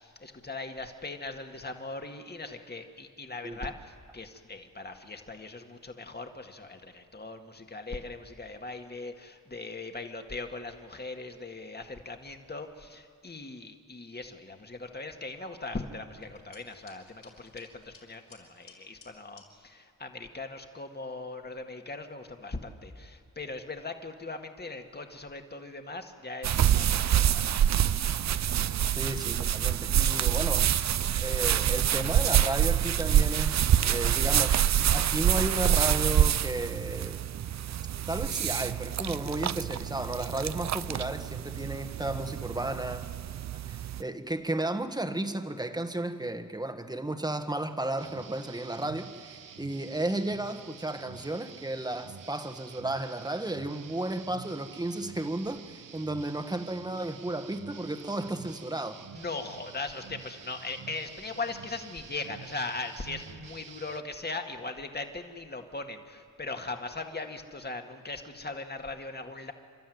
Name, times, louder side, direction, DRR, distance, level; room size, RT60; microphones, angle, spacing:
voice 1, 0.0-27.6 59.1-69.5, left 3 dB, 30° left, 5 dB, 2.0 m, -39 dB
sound 1, 16.2-19.5, left 4 dB, 75° left, 6.5 m, -56 dB
sound 2, 26.4-44.0, right 10 dB, 55° right, 0.5 m, -26 dB
voice 2, 29.0-30.7 31.2-37.2 38.1-43.0 43.5-59.0, right 2 dB, 10° right, 7 dB, 1.5 m, -33 dB
sound 3, 48.0-64.0, right 7 dB, 75° right, 1.0 m, -48 dB
29.0 x 13.0 x 9.4 m, 2.4 s
cardioid pair, 75°, 33 cm